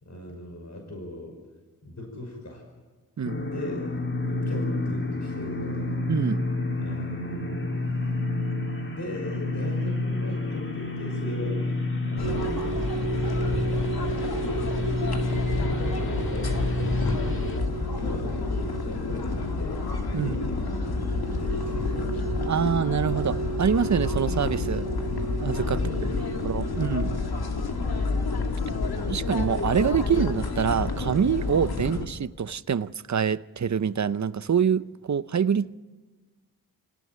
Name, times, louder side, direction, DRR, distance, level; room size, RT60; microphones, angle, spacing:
voice 1, 0.0-1.4 1.8-2.6 3.4-4.0 4.3-6.0 6.8-7.7 8.8-11.6 12.0-14.8 15.2-17.7 17.9-19.9 20.2-22.2 25.8-26.8 28.9-29.3 30.0-30.1, left 1 dB, 50° left, 5.6 m, -39 dB
sound 1, 3.2-17.6, left 2 dB, 30° left, 2.2 m, -29 dB
voice 2, 3.2-3.5 6.1-6.5 20.1-20.4 22.4-24.9 25.4-25.8 26.4-27.2 29.1-35.8, right 7 dB, 50° right, 0.8 m, -25 dB
sound 2, 12.2-32.1, left 3 dB, 80° left, 2.4 m, -29 dB
sound 3, 12.2-27.3, right 7 dB, 85° right, 2.2 m, -36 dB
27.0 x 18.0 x 9.4 m
cardioid pair, 60°, 37 cm